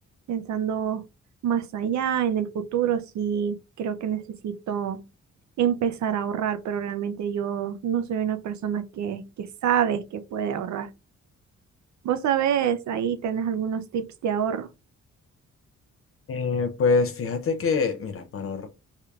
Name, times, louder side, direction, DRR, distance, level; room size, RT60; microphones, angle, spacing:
voice 1, 0.3-1.0 1.4-5.0 5.6-10.9 12.0-14.7, right 8 dB, 70° right, 0.5 m, -27 dB
voice 2, 16.3-18.7, left 4 dB, 50° left, 0.4 m, -25 dB
3.6 x 3.2 x 2.2 m
wide cardioid pair, 155°, 30 cm